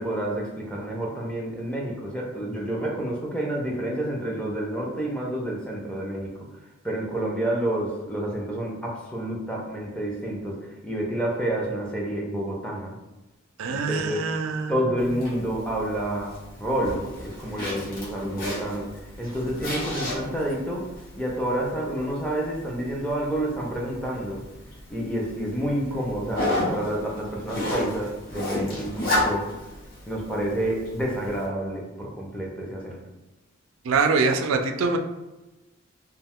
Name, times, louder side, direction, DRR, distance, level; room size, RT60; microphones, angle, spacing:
voice 1, 0.0-6.3 6.8-12.9 13.7-14.3 14.7-18.9 19.2-20.8 21.2-24.4 24.9-29.5 30.1-33.0, right 1 dB, 5° left, -2 dB, 0.4 m, -29 dB
voice 2, 13.6-14.7 33.9-35.0, right 4 dB, 75° right, 5 dB, 0.3 m, -24 dB
Zipper (clothing), 15.0-31.4, left 1 dB, 45° left, 0.8 m, -33 dB
2.4 x 2.3 x 3.5 m, 1.1 s
head